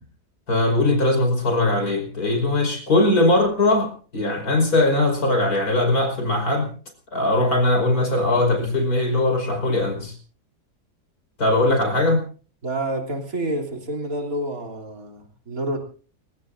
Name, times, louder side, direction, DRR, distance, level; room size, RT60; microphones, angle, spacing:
voice 1, 0.5-6.7 7.1-10.2 11.4-12.3, left 2 dB, 65° left, 5 dB, 5.6 m, -20 dB
voice 2, 12.6-15.8, right 1 dB, 60° right, 1 dB, 3.7 m, -28 dB
29.5 x 17.0 x 2.6 m, 0.40 s
omnidirectional pair, 1.7 m